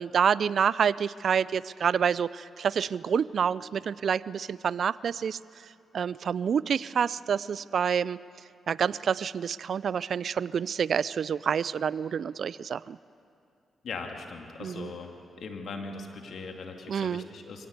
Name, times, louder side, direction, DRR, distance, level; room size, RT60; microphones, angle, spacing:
voice 1, 0.0-5.4 5.9-8.2 8.7-13.0 14.6-14.9 16.9-17.2, right 7 dB, 65° right, 19 dB, 0.4 m, -28 dB
voice 2, 13.8-15.1 15.4-17.7, left 4 dB, 70° left, 3 dB, 2.6 m, -39 dB
24.0 x 17.5 x 8.2 m, 2.5 s
supercardioid pair, 55°, 0 cm